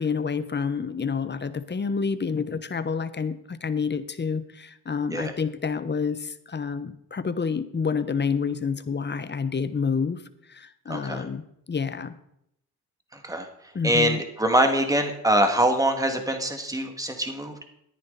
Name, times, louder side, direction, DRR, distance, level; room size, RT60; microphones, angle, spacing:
voice 1, 0.0-10.2 10.5-11.4 11.7-12.1 13.7-14.2, left 5 dB, 25° left, 13 dB, 1.0 m, -28 dB
voice 2, 10.9-11.2 13.1-13.5 13.8-17.5, right 1 dB, 10° right, 5 dB, 2.2 m, -24 dB
14.0 x 10.0 x 4.1 m, 0.75 s
cardioid pair, 80°, 40 cm